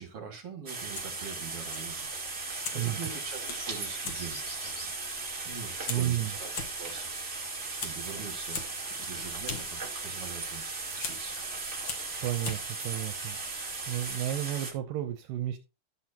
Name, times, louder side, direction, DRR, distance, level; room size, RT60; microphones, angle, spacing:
voice 1, 0.0-2.1 2.5-8.7 9.0-10.6 11.0-11.4, right 6 dB, 45° right, 3 dB, 2.5 m, -44 dB
sound 1, 0.7-14.7, right 3 dB, 25° right, 1.5 m, -37 dB
Fire, 0.8-14.2, left 5 dB, 65° left, 1.2 m, -44 dB
sound 2, 3.3-5.8 8.4-8.6, equal, 40° left, 6.8 m, -48 dB
voice 2, 5.9-6.3 12.2-13.4 13.9-15.6, right 13 dB, 80° right, 8 dB, 2.3 m, -32 dB
13.0 x 7.7 x 2.8 m, 0.27 s
omnidirectional pair, 4.1 m